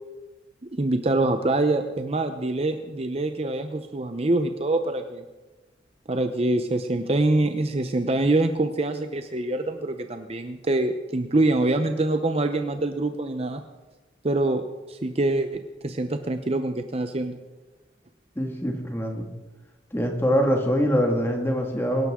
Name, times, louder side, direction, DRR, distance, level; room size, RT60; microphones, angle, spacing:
voice 1, 0.7-5.2 6.1-13.6 14.2-17.4, right 2 dB, 30° right, 7 dB, 0.7 m, -25 dB
voice 2, 18.4-19.3 19.9-22.1, equal, 10° left, 2 dB, 1.9 m, -24 dB
24.0 x 12.0 x 3.7 m, 1.2 s
head